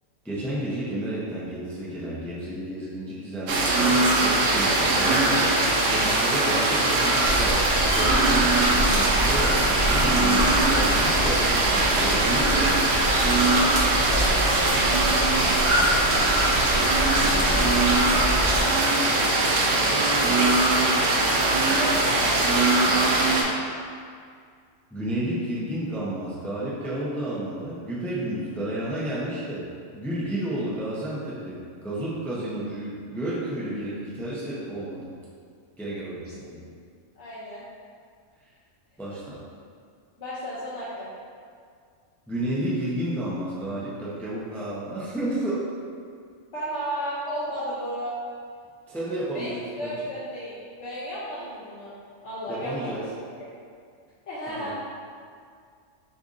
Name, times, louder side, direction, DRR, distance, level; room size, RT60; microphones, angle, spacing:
voice 1, 0.2-5.5 5.9-7.6 7.9-12.9 17.1-17.6 19.7-20.6 24.9-29.7 29.9-35.1 35.8-36.7 39.0-39.4 42.3-45.7 48.9-49.9 52.5-53.0 54.5-54.7, right 1 dB, ahead, -8 dB, 0.5 m, -31 dB
sound 1, 3.5-23.4, right 2 dB, 80° right, 1.0 m, -21 dB
sound 2, 7.2-18.6, equal, 40° right, 0.7 m, -28 dB
voice 2, 14.0-15.8 16.1-16.6 17.1-18.5 20.4-20.5 20.8-21.0 21.4-22.4 37.1-37.6 40.2-41.1 46.5-48.1 49.3-49.5 49.8-52.0 52.2-52.9 53.3-53.4 54.3-54.8, equal, 70° left, -9 dB, 1.1 m, -34 dB
6.6 x 2.6 x 2.6 m, 2.2 s
omnidirectional pair, 1.3 m